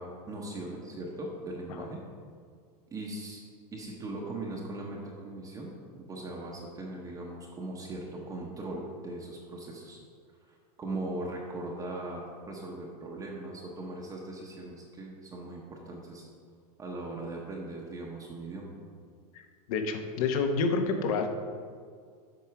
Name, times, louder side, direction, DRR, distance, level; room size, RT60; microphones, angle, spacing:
voice 1, 0.0-2.0 2.9-3.4 3.7-5.7 6.0-10.0 10.5-16.3 16.8-18.7, right 2 dB, 15° right, -2 dB, 0.8 m, -39 dB
voice 2, 19.3-21.3, left 4 dB, 60° left, 6 dB, 1.0 m, -29 dB
7.8 x 4.6 x 5.8 m, 2.1 s
supercardioid pair, 150°, 20 cm